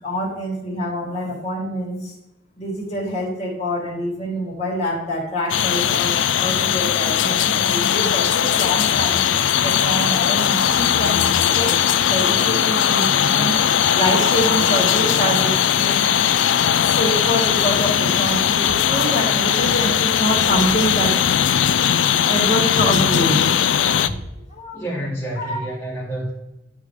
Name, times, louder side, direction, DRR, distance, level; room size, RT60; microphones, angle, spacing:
voice 1, 0.0-2.1 2.6-9.2 9.6-13.6 13.9-16.1 16.8-21.2 21.6-21.7 22.2-23.5 24.1-24.2 24.5-24.9 25.4-25.6, equal, 35° left, -5 dB, 3.5 m, -25 dB
sound 1, 5.5-24.1, left 9 dB, 90° left, 0.4 m, -19 dB
voice 2, 24.7-26.3, right 1 dB, 15° left, -9 dB, 3.3 m, -28 dB
12.5 x 5.0 x 3.6 m, 0.88 s
head